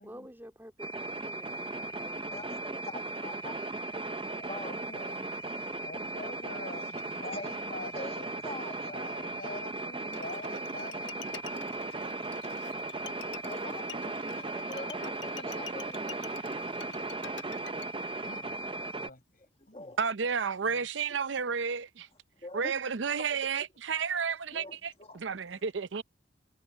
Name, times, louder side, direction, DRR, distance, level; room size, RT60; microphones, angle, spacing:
voice 1, 0.0-2.5, equal, 10° right, 3.0 m, -49 dB
sound 1, 0.8-19.1, right 2 dB, 30° right, 0.6 m, -37 dB
voice 2, 2.3-3.6 4.3-4.8 5.4-5.8 6.8-6.9 7.3-7.6 7.9-9.0 13.4-16.4 19.7-20.0 22.4-22.8 23.4-23.5 24.5-25.6, left 2 dB, 30° left, 1.9 m, -45 dB
voice 3, 4.6-5.4 5.8-8.4 8.9-11.7 13.4-13.5 18.2-18.5 18.8-19.9 20.7-20.8, left 2 dB, 50° left, 7.3 m, -46 dB
Bowed string instrument, 10.1-17.9, left 8 dB, 80° left, 1.3 m, -48 dB
voice 4, 20.0-22.1 22.5-26.0, right 6 dB, 85° right, 0.6 m, -32 dB
head